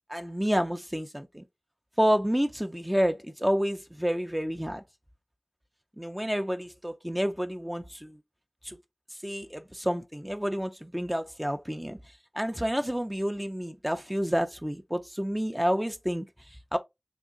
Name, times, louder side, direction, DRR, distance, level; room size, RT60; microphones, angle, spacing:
voice 1, 0.1-1.4 2.0-4.8 6.0-8.2 8.6-8.8 9.1-12.0 12.3-16.8, equal, 10° right, 0.4 m, -29 dB
3.6 x 3.0 x 2.4 m
wide cardioid pair, 45°, 0 cm